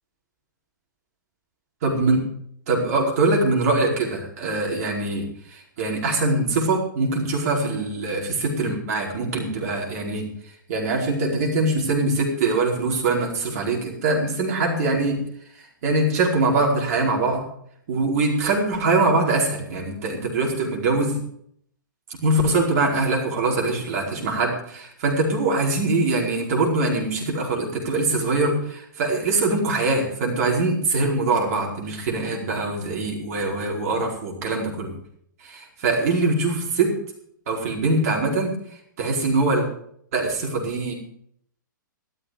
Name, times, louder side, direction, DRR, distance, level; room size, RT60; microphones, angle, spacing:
voice 1, 1.8-2.2 2.7-10.3 10.7-15.2 15.8-17.4 17.9-21.2 22.2-34.9 35.8-36.9 37.5-38.5 39.0-39.6 40.1-40.9, right 2 dB, 45° right, 0 dB, 4.7 m, -23 dB
13.0 x 13.0 x 5.0 m, 0.66 s
figure-of-eight pair, 110°, 11 cm